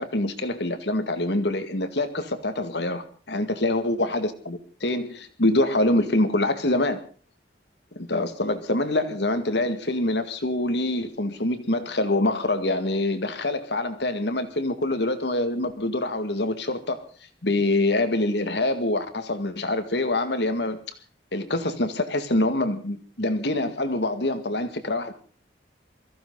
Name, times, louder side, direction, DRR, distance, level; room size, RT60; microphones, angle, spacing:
voice 1, 0.0-7.0 7.9-17.0 17.4-20.8 21.3-25.1, left 2 dB, 75° left, 2.1 m, -25 dB
23.5 x 15.0 x 4.0 m
head